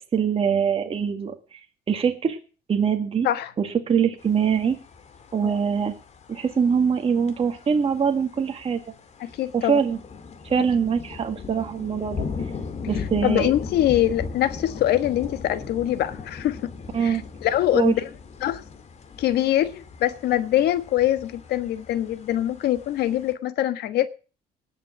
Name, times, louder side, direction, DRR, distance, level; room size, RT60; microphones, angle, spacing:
voice 1, 0.1-1.6 1.9-2.4 2.7-3.3 3.6-4.8 5.3-5.9 6.3-8.8 9.5-10.0 10.4-12.3 12.9-13.5 16.9-17.2 17.7-17.9, right 7 dB, 35° right, 1.9 m, -23 dB
sound 1, 4.2-23.3, left 5 dB, 40° left, 2.1 m, -38 dB
voice 2, 9.2-9.8 13.2-16.7 17.0-18.0 18.4-18.6 19.2-24.1, left 12 dB, 75° left, 1.3 m, -23 dB
19.0 x 6.7 x 7.3 m
cardioid pair, 110°, 17 cm